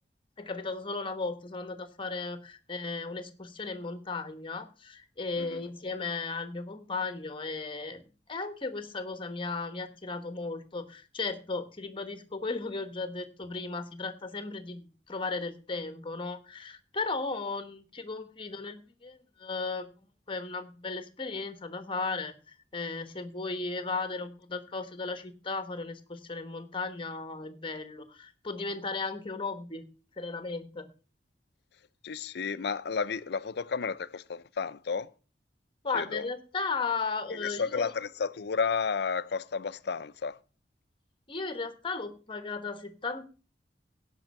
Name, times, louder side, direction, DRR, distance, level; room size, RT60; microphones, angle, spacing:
voice 1, 0.4-8.0 8.3-19.9 20.3-29.9 30.2-30.9 35.8-37.9 41.3-43.2, left 3 dB, 30° left, 1.1 m, -35 dB
voice 2, 32.0-35.1 35.9-36.2 37.3-40.4, left 5 dB, 65° left, 0.5 m, -32 dB
16.5 x 5.6 x 5.3 m
head